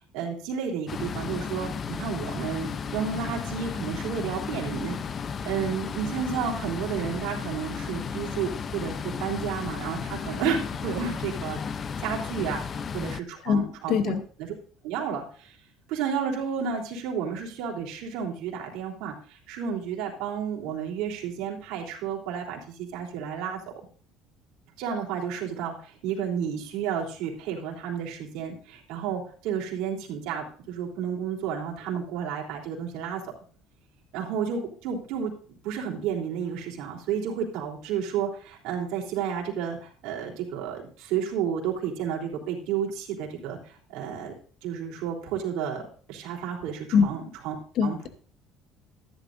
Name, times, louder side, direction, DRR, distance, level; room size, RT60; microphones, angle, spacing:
voice 1, 0.1-5.0 5.4-11.6 12.0-14.6 14.8-15.5 15.9-23.6 24.8-33.2 34.1-35.3 35.6-44.3 44.6-45.8 46.1-47.6 47.8-48.1, right 7 dB, 75° right, 0 dB, 3.5 m, -31 dB
sound 1, 0.9-13.2, left 6 dB, 30° left, 0.6 m, -34 dB
voice 2, 13.4-14.2 46.9-47.1 47.8-48.1, left 6 dB, 55° left, 10 dB, 1.0 m, -23 dB
14.0 x 11.0 x 2.6 m, 0.44 s
cardioid pair, 140°, 0 cm